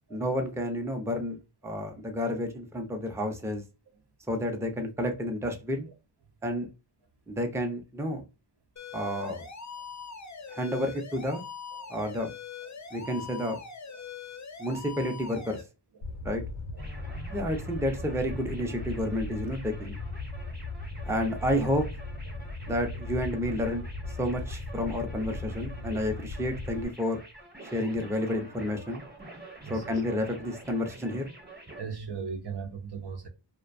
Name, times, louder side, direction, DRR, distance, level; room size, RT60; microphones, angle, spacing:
voice 1, 0.1-3.6 4.3-5.9 6.4-6.7 7.3-8.2 8.9-9.4 10.5-11.4 11.9-12.3 12.9-13.6 14.6-15.6 16.2-16.4 17.3-20.0 21.1-21.9 22.7-23.8 24.2-27.2 27.7-29.0 29.7-31.3, left 1 dB, 5° right, 0.5 m, -30 dB
sound 1, 8.8-15.6, left 6 dB, 40° left, 0.5 m, -42 dB
Fire, 16.0-26.8, left 2 dB, 75° left, 0.7 m, -38 dB
sound 2, 16.8-31.8, right 2 dB, 20° right, 1.0 m, -49 dB
voice 2, 31.8-33.3, right 5 dB, 55° right, 0.6 m, -38 dB
2.4 x 2.2 x 2.5 m
wide cardioid pair, 40°, 48 cm